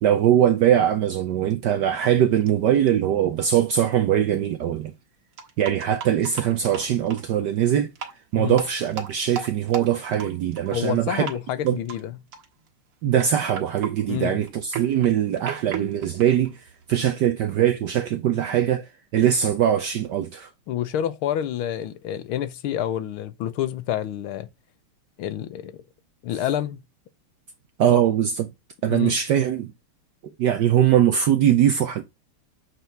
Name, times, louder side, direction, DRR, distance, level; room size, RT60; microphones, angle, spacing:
voice 1, 0.0-4.9 5.6-7.9 8.3-11.3 11.6-11.8 13.0-20.5 27.8-28.5 28.8-29.7 30.4-32.0, right 10 dB, 65° right, 1.1 m, -21 dB
sound 1, 2.4-2.5 2.9-3.0 3.9-4.0 4.3-4.4 5.4-7.3 7.9-8.2 8.5-11.0 11.2-11.4 11.7-12.0 12.3-12.7 13.1-17.0, right 7 dB, 85° right, 2.4 m, -36 dB
voice 2, 10.7-12.2 14.1-14.4 20.7-24.5 25.2-25.8 26.2-26.8 27.9-28.0 28.9-29.2, left 11 dB, 75° left, 1.6 m, -28 dB
8.2 x 4.1 x 4.6 m
omnidirectional pair, 2.4 m